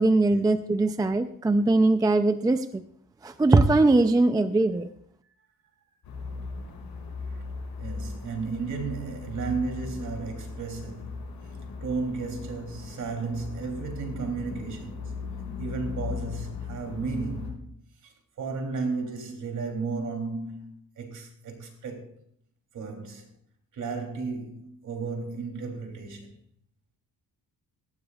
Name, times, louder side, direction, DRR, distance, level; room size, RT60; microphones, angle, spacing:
voice 1, 0.0-2.8 3.2-4.9, right 2 dB, 10° right, 0.4 m, -21 dB
sound 1, 6.0-17.5, left 4 dB, 90° left, 5.6 m, -38 dB
voice 2, 7.8-15.2 15.6-17.8 18.0-22.1 22.7-23.3 23.7-26.3, right 4 dB, 55° right, 3.1 m, -34 dB
18.0 x 14.5 x 2.4 m
cardioid pair, 155°, 36 cm